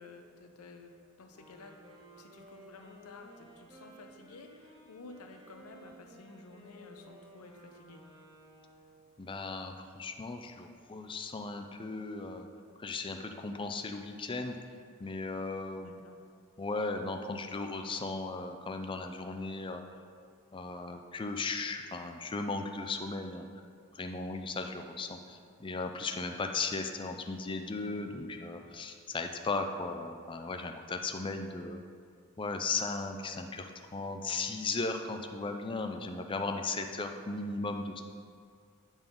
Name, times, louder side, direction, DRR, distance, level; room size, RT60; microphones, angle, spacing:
voice 1, 0.0-1.8 2.2-8.0 15.8-16.2, left 3 dB, 80° left, 5 dB, 0.7 m, -52 dB
Wind instrument woodwind instrument, 1.3-9.2, right 1 dB, 20° right, 1.3 m, -56 dB
voice 2, 9.2-12.5 12.8-14.6 15.0-15.9 16.6-19.8 20.5-23.5 24.0-31.8 32.4-38.0, left 3 dB, 20° left, 5 dB, 0.4 m, -36 dB
9.0 x 3.8 x 5.2 m, 2.2 s
head